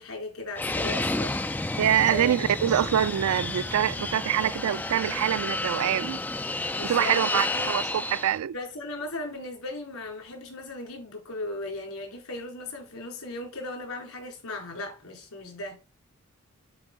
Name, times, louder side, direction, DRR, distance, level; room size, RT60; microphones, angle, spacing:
voice 1, 0.0-2.6 6.7-7.8 8.5-15.8, left 1 dB, 90° left, 4.0 m, -37 dB
Fixed-wing aircraft airplane, 0.6-8.4, left 2 dB, 10° left, 0.3 m, -31 dB
voice 2, 1.8-6.2 6.8-7.8 8.1-8.5, right 10 dB, 80° right, 0.3 m, -25 dB
8.8 x 4.5 x 3.8 m
head